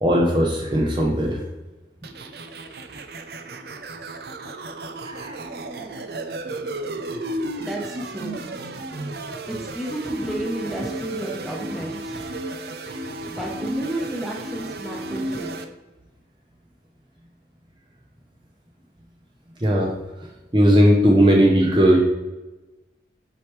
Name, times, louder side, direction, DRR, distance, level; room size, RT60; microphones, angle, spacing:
voice 1, 0.0-1.4 5.0-5.3 19.6-19.9 20.5-22.0, equal, 25° right, -1 dB, 0.8 m, -17 dB
sound 1, 2.0-15.6, right 1 dB, 60° right, 0.6 m, -33 dB
voice 2, 7.6-8.4 9.5-12.3 13.3-15.5, right 1 dB, ahead, -2 dB, 1.0 m, -32 dB
7.5 x 4.9 x 3.2 m, 1.1 s
head